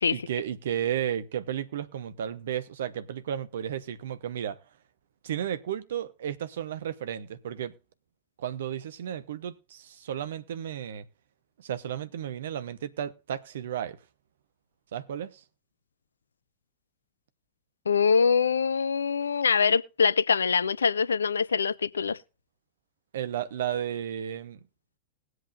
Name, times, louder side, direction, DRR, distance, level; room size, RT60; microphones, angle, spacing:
voice 1, 0.1-4.6 5.2-7.7 8.4-11.1 11.6-14.0 14.9-15.4 23.1-24.6, right 10 dB, 60° right, 1.0 m, -33 dB
voice 2, 17.9-22.2, left 6 dB, 70° left, 0.4 m, -24 dB
20.0 x 7.9 x 2.5 m
figure-of-eight pair, 90°, 0 cm